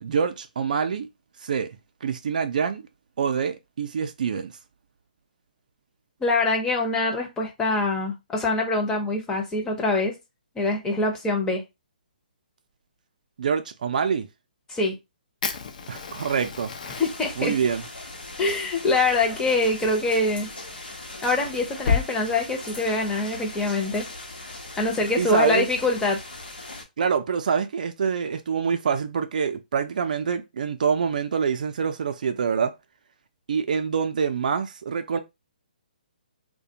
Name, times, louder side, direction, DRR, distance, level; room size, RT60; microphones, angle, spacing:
voice 1, 0.0-1.1 1.4-1.7 2.0-2.8 3.2-4.5 13.4-14.3 15.9-16.7 17.4-17.8 25.2-25.7 27.0-32.7 33.5-35.2, right 6 dB, 60° right, 0.4 m, -25 dB
voice 2, 6.2-10.1 10.6-11.6 14.7-14.9 17.0-17.5 18.4-20.5 21.2-24.0 24.8-26.2, left 3 dB, 10° left, 0.6 m, -24 dB
Fire, 15.4-22.1, left 5 dB, 55° left, 0.5 m, -33 dB
sound 1, 16.9-26.8, left 2 dB, 90° left, 0.8 m, -39 dB
2.3 x 2.2 x 2.7 m
figure-of-eight pair, 140°, 5 cm